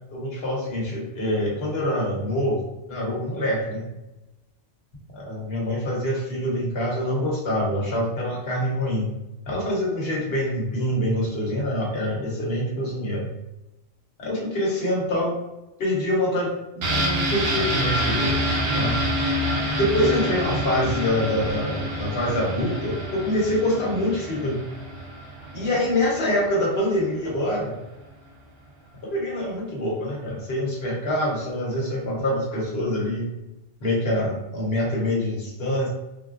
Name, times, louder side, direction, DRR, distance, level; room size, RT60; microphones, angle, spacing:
voice 1, 0.1-3.9 5.1-9.1 9.5-13.3 14.2-15.4 15.8-18.3 18.7-19.0 19.8-24.6 25.5-27.8 29.0-33.3 33.8-35.9, left 1 dB, 60° left, -3 dB, 1.1 m, -25 dB
sound 1, 16.8-26.4 26.8-26.9, equal, 65° right, 0.8 m, -27 dB
3.8 x 2.1 x 2.4 m, 0.96 s
omnidirectional pair, 1.2 m